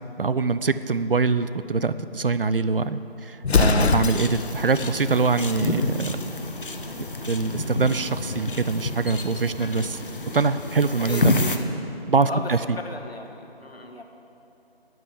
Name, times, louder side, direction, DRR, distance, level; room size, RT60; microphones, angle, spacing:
voice 1, 0.2-6.2 7.0-10.0 10.3-11.4 12.1-12.6, right 4 dB, 60° right, 14 dB, 0.5 m, -24 dB
Explosion, 3.4-4.6, left 5 dB, 90° left, 0.6 m, -21 dB
sound 1, 4.1-11.6, left 2 dB, 55° left, 0.9 m, -29 dB
voice 2, 11.0-11.7 12.3-12.5 12.8-14.0, left 1 dB, 75° left, 4 dB, 1.5 m, -36 dB
9.2 x 8.6 x 8.4 m, 2.8 s
figure-of-eight pair, 165°, 31 cm